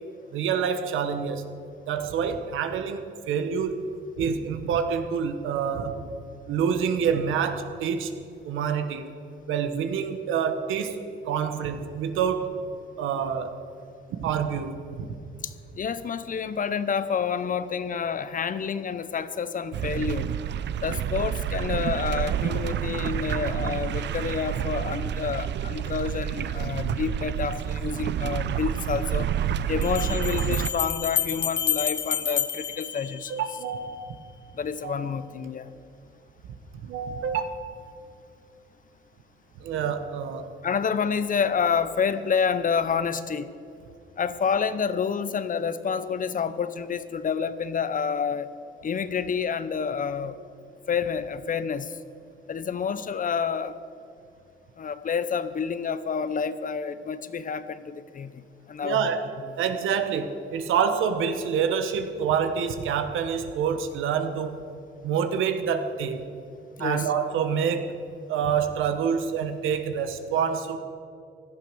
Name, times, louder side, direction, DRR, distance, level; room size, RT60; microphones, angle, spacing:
voice 1, 0.3-1.4 1.9-3.8 4.2-6.1 6.5-8.2 8.4-9.1 9.5-11.0 11.2-12.6 13.0-13.6 14.2-15.1 33.3-34.2 34.8-35.1 36.7-37.6 39.6-40.5 58.8-59.3 59.6-64.6 65.0-66.2 66.8-68.0 68.3-70.8, right 7 dB, 85° right, 8 dB, 1.3 m, -27 dB
voice 2, 15.4-20.3 20.8-29.3 29.7-33.3 34.5-35.7 40.6-43.5 44.2-48.5 48.8-50.4 50.9-52.0 52.5-53.7 54.8-59.1 66.8-67.1, left 6 dB, 40° left, 13 dB, 0.9 m, -28 dB
sound 1, 19.7-30.7, right 10 dB, 65° right, 0.6 m, -29 dB
Bell, 28.2-28.3 29.8-33.7, left 9 dB, 60° left, 1.2 m, -29 dB
17.0 x 12.0 x 6.3 m, 2.4 s
cardioid pair, 90°, 20 cm